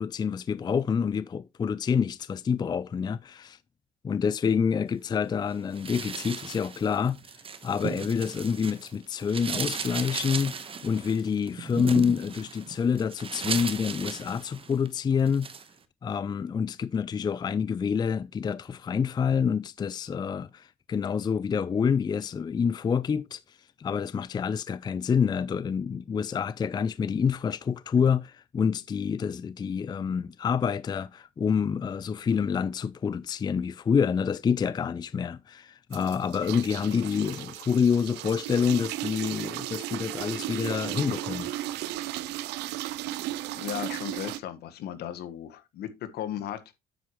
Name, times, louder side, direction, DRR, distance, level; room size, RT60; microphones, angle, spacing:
voice 1, 0.0-3.6 4.0-7.2 7.6-15.5 16.0-41.5, left 6 dB, 25° left, 0.4 m, -27 dB
sound 1, 5.7-8.9 9.2-14.9 15.3-15.7, right 6 dB, 35° right, 1.2 m, -36 dB
sound 2, 35.9-44.4, right 15 dB, 85° right, 0.6 m, -35 dB
voice 2, 43.5-46.7, left 10 dB, 70° left, 1.6 m, -36 dB
9.2 x 7.9 x 3.1 m
cardioid pair, 110°, 17 cm